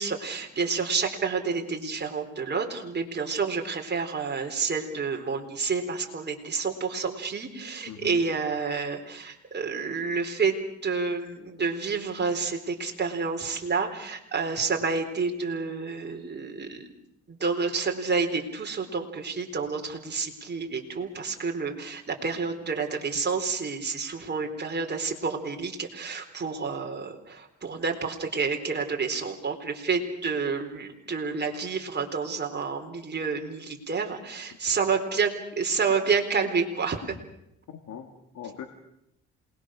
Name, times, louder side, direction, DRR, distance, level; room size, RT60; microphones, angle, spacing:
voice 1, 0.0-10.6 10.8-16.9 17.3-37.2, right 5 dB, 35° right, 3 dB, 4.1 m, -29 dB
voice 2, 7.9-8.2 37.7-38.6, left 9 dB, 70° left, 5 dB, 2.5 m, -41 dB
27.5 x 21.0 x 6.5 m, 0.81 s
cardioid pair, 90°, 30 cm